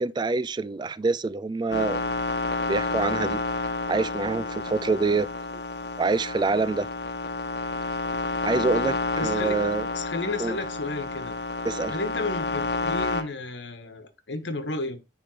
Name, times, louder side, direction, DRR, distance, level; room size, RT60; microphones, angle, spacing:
voice 1, 0.0-2.0 2.7-3.4 3.9-5.3 6.0-6.9 8.4-9.9 10.4-10.6 11.7-11.9, right 3 dB, 25° right, 0.3 m, -26 dB
sound 1, 1.7-13.2, left 3 dB, 65° left, 1.1 m, -30 dB
voice 2, 9.2-9.5 9.9-11.4 11.9-15.0, left 2 dB, 90° left, 1.5 m, -33 dB
10.0 x 3.7 x 4.9 m
head